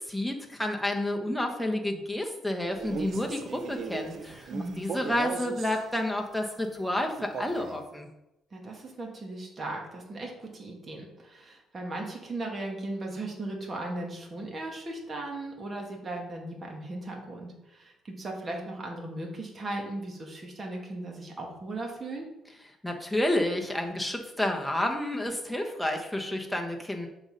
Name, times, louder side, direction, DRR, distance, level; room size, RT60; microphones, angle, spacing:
voice 1, 0.1-8.1 22.8-27.1, left 1 dB, ahead, 1 dB, 1.1 m, -30 dB
Male speech man speaking, 2.7-5.8 7.2-7.8, right 5 dB, 55° right, 0.7 m, -38 dB
voice 2, 4.5-4.8 8.5-22.3, right 2 dB, 35° right, 1 dB, 1.9 m, -37 dB
7.0 x 4.0 x 5.4 m, 0.90 s
cardioid pair, 95°, 0 cm